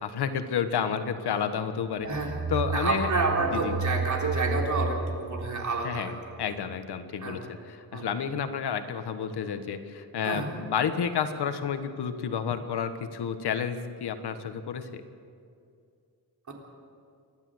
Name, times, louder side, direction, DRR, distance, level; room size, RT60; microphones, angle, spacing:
voice 1, 0.0-2.1 2.5-3.1 3.5-3.7 5.8-6.1 6.4-15.0, left 7 dB, 85° left, 9 dB, 1.5 m, -30 dB
voice 2, 2.0-6.1 7.2-7.4 7.9-8.1 10.2-10.5 16.5-16.6, right 3 dB, 50° right, 0 dB, 3.6 m, -29 dB
sound 1, 2.0-6.5, right 3 dB, 80° right, 7.4 m, -32 dB
29.0 x 12.0 x 7.9 m, 2.4 s
wide cardioid pair, 155°, 38 cm